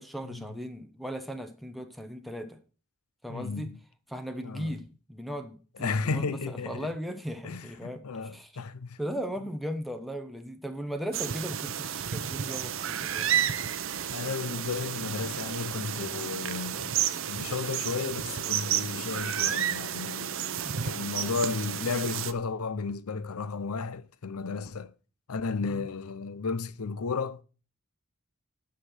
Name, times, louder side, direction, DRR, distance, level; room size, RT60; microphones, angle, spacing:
voice 1, 0.0-2.6 3.2-3.7 4.1-8.0 8.3-8.5 9.0-13.3 20.6-20.9 25.6-25.9, equal, ahead, 0.9 m, -37 dB
voice 2, 3.3-3.8 4.4-4.8 5.8-6.9 7.4-9.0 14.1-20.5 20.8-24.9 25.3-27.4, left 4 dB, 85° left, 0.6 m, -33 dB
sound 1, 11.1-22.3, right 9 dB, 60° right, 0.7 m, -31 dB
9.8 x 5.8 x 6.3 m
head